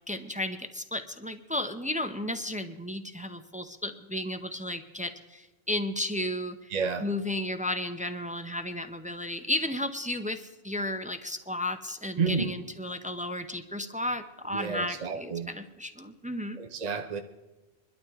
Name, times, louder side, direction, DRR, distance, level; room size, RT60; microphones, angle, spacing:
voice 1, 0.1-6.7 7.0-16.6, left 1 dB, 10° right, 7 dB, 0.5 m, -33 dB
voice 2, 6.7-7.1 12.2-12.6 14.5-15.5 16.6-17.2, right 5 dB, 45° right, 6 dB, 0.8 m, -30 dB
24.5 x 12.0 x 3.6 m, 1.1 s
omnidirectional pair, 1.1 m